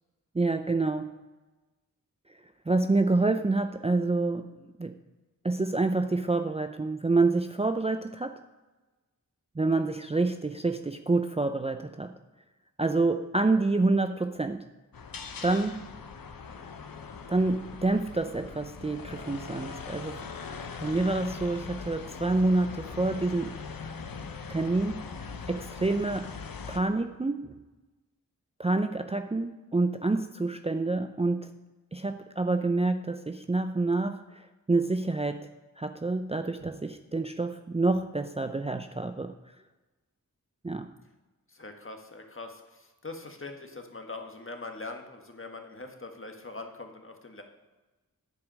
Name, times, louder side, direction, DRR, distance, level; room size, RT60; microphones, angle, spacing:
voice 1, 0.3-1.1 2.7-4.5 4.8-4.9 5.4-8.4 9.6-12.1 12.8-14.7 15.4-15.9 17.3-20.2 20.8-23.6 24.5-25.1 25.5-26.3 26.7-27.6 28.6-31.5 31.9-34.4 34.7-35.5 35.8-39.3 40.6-40.9, right 3 dB, 20° right, 8 dB, 0.5 m, -27 dB
sound 1, 14.9-26.8, left 5 dB, 75° left, 0.9 m, -41 dB
voice 2, 41.5-47.4, left 3 dB, 35° left, 4 dB, 1.6 m, -42 dB
10.5 x 4.9 x 6.2 m, 1.2 s
cardioid pair, 40°, 34 cm